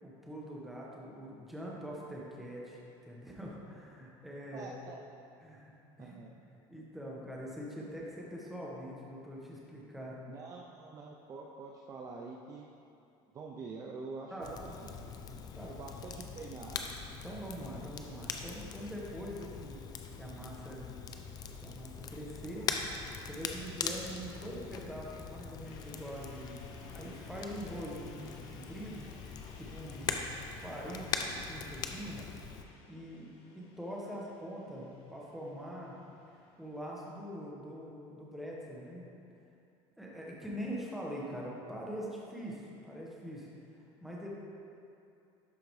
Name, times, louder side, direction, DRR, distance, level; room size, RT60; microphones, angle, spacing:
voice 1, 0.0-4.7 5.4-5.7 6.0-6.2 6.5-10.2 14.3-14.5 15.5-15.7 17.2-19.8 20.2-20.9 21.6-22.7 23.2-26.5 26.9-29.1 29.5-30.4 30.6-32.2 32.9-36.0 36.6-39.0 40.0-43.5 44.0-44.3, equal, ahead, -4 dB, 1.3 m, -43 dB
voice 2, 4.5-5.0 6.0-6.3 10.3-12.7 13.3-15.1 15.7-16.8 30.0-30.3 34.1-34.2, right 4 dB, 30° right, -1 dB, 0.5 m, -46 dB
Crackle, 14.4-32.6, left 6 dB, 35° left, 0.5 m, -42 dB
sound 1, 25.6-37.3, left 3 dB, 60° left, 1.1 m, -58 dB
12.0 x 4.9 x 3.2 m, 2.6 s
cardioid pair, 140°, 11 cm